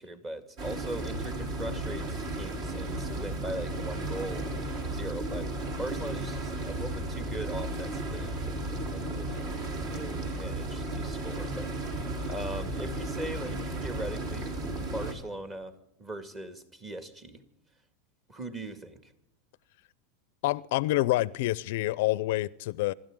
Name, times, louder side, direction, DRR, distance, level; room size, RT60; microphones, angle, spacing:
voice 1, 0.0-14.5 14.8-17.4 18.3-19.1, right 1 dB, 20° right, 1.9 m, -40 dB
sound 1, 0.6-15.1, right 2 dB, 50° right, 3.5 m, -34 dB
voice 2, 20.4-22.9, left 18 dB, 65° left, 0.5 m, -27 dB
26.0 x 12.5 x 3.7 m
supercardioid pair, 140°, 0 cm